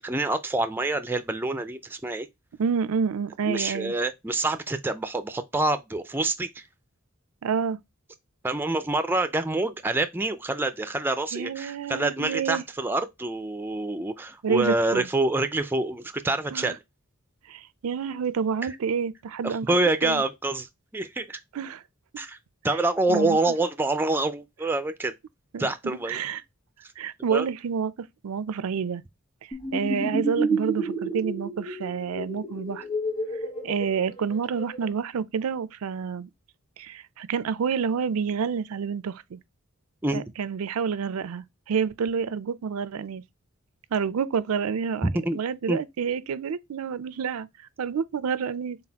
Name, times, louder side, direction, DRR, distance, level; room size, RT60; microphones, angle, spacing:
voice 1, 0.0-2.3 3.4-6.6 8.4-16.8 19.4-20.7 20.9-21.4 22.2-22.4 22.6-25.1 25.6-26.2 27.3-27.5 40.0-40.2 45.0-45.4 45.7-45.8, right 2 dB, 10° right, 0.3 m, -26 dB
voice 2, 2.6-3.9 7.4-7.8 11.3-12.6 14.4-15.1 16.5-16.7 17.5-19.7 20.0-20.2 21.5-21.8 23.1-23.4 25.5-26.4 27.0-29.0 29.7-32.8 33.6-36.3 36.8-39.4 40.1-43.2 43.9-47.5 47.8-48.8, right 6 dB, 85° right, 0.4 m, -28 dB
sound 1, 29.5-34.9, right 2 dB, 20° left, 1.2 m, -30 dB
4.0 x 3.9 x 2.8 m
head